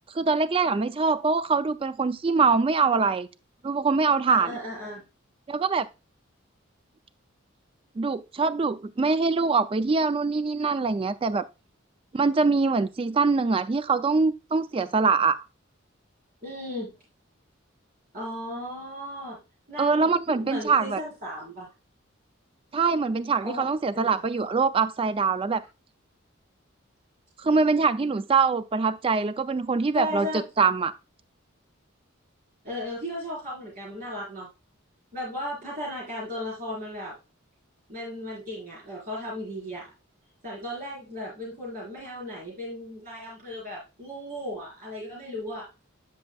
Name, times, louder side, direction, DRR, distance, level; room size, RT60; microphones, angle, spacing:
voice 1, 0.1-3.3 3.6-4.6 5.5-5.9 8.0-11.4 12.1-15.4 19.8-21.0 22.7-25.6 27.4-30.9, right 4 dB, 25° right, 0.3 m, -23 dB
voice 2, 4.3-5.0 16.4-16.9 18.1-19.4 19.7-21.7 23.4-24.2 29.9-30.4 32.6-34.5 35.1-37.2 37.9-39.8 40.4-45.7, left 1 dB, 40° right, 4.5 m, -36 dB
10.5 x 6.3 x 2.3 m
head